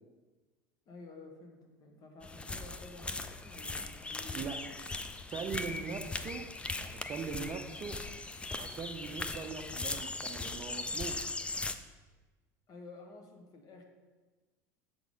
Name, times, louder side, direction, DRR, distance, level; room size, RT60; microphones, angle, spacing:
voice 1, 0.9-4.5 12.7-13.8, left 3 dB, 40° left, 3 dB, 1.3 m, -51 dB
sound 1, 2.2-11.7, left 3 dB, 10° left, 0.4 m, -39 dB
voice 2, 5.3-6.4 6.8-8.0 8.6-11.2, right 6 dB, 35° right, 6 dB, 0.6 m, -41 dB
6.8 x 4.0 x 4.9 m, 1.3 s
hypercardioid pair, 95°, 10 cm